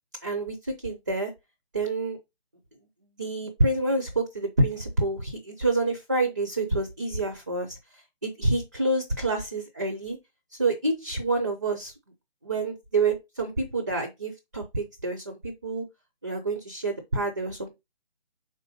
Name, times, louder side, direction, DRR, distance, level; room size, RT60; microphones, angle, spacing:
voice 1, 0.2-1.3 1.7-2.2 3.2-7.8 8.2-10.2 10.6-11.9 12.4-15.9 16.2-17.7, right 2 dB, 20° right, 0.6 m, -27 dB
5.5 x 3.9 x 4.9 m
hypercardioid pair, 165°, 31 cm